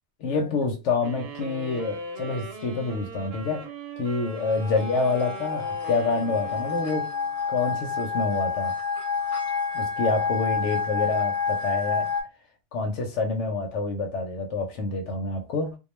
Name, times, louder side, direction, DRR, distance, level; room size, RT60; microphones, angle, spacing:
voice 1, 0.2-3.6 4.0-7.1 7.5-8.7 9.7-12.1 12.7-15.8, left 3 dB, 90° left, 1.0 m, -27 dB
sound 1, 1.0-7.4, right 3 dB, 65° right, 0.9 m, -40 dB
sound 2, 4.4-12.2, left 5 dB, 60° left, 0.9 m, -29 dB
2.3 x 2.2 x 3.0 m
omnidirectional pair, 1.2 m